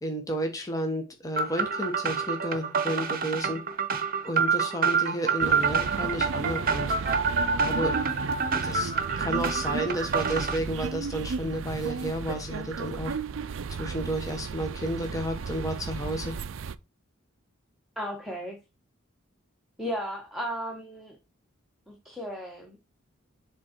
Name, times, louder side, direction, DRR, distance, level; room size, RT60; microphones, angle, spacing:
voice 1, 0.0-3.6 4.2-6.9 7.6-8.0 8.6-8.9 9.2-13.2 13.7-16.4, equal, 15° left, 3 dB, 1.2 m, -32 dB
sound 1, 1.4-10.6, right 5 dB, 45° right, 0.9 m, -27 dB
sound 2, 5.4-16.7, right 5 dB, 65° right, 0.4 m, -34 dB
voice 2, 18.0-18.6 19.8-21.2 21.9-22.8, equal, ahead, 0 dB, 1.3 m, -35 dB
7.4 x 3.8 x 4.4 m, 0.26 s
head